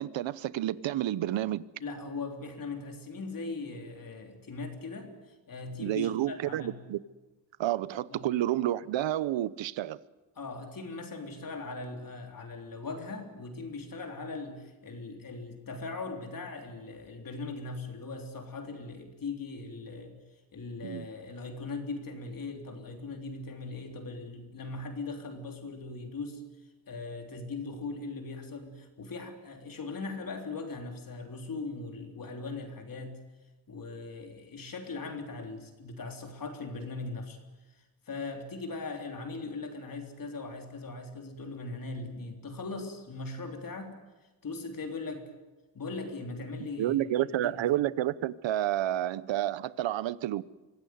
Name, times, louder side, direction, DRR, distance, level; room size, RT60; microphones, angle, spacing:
voice 1, 0.0-1.6 5.8-7.0 7.6-10.0 20.8-21.1 46.8-50.4, right 13 dB, 75° right, 0.9 m, -30 dB
voice 2, 1.8-6.8 8.1-8.3 10.4-20.2 20.5-26.4 26.9-33.2 33.7-37.4 38.1-44.0 44.4-45.3 45.7-47.7, left 3 dB, 45° left, 3.5 m, -39 dB
24.5 x 16.0 x 9.4 m
cardioid pair, 120°, 45 cm